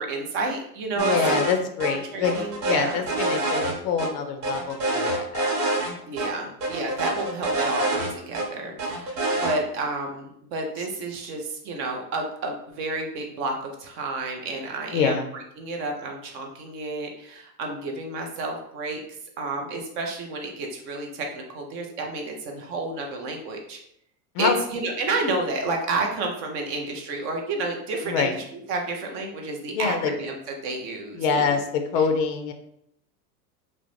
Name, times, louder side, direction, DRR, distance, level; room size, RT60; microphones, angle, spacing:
voice 1, 0.0-1.4 2.1-3.0 6.1-15.2 15.6-19.0 19.4-23.8 24.4-31.6 32.0-32.1, right 3 dB, 30° right, 2 dB, 0.4 m, -30 dB
voice 2, 1.0-2.3 2.6-5.5 14.9-15.3 24.3-24.6 28.1-28.3 29.7-30.1 31.2-32.5, left 6 dB, 40° left, 6 dB, 0.4 m, -25 dB
sound 1, 1.0-1.5 1.8-1.9 2.2-4.1 4.4-5.9 6.2-6.3 6.6-8.5 8.8-9.5, right 2 dB, 70° right, 1.0 m, -26 dB
2.3 x 2.0 x 3.0 m, 0.72 s
hypercardioid pair, 105°, 48 cm